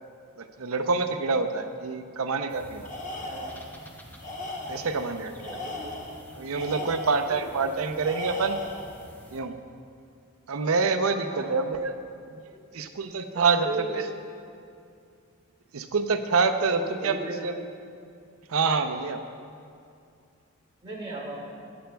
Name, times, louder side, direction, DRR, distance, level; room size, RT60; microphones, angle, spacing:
voice 1, 0.4-2.9 4.7-5.3 6.3-8.6 9.3-9.5 10.5-11.9 12.7-14.0 15.7-17.5 18.5-19.2, right 4 dB, 75° right, 8 dB, 0.6 m, -26 dB
sound 1, 2.5-9.4, equal, 10° left, 0.7 m, -49 dB
Tools, 2.8-3.7 4.2-5.0 5.4-7.3 8.0-8.9, left 2 dB, 35° left, 0.9 m, -37 dB
voice 2, 5.2-6.0 6.6-6.9 7.3-7.8 11.3-11.6 12.5-12.6 13.3-13.9 16.7-17.4 20.8-21.7, right 2 dB, 25° right, -4 dB, 2.0 m, -38 dB
13.5 x 10.0 x 2.3 m, 2.4 s
head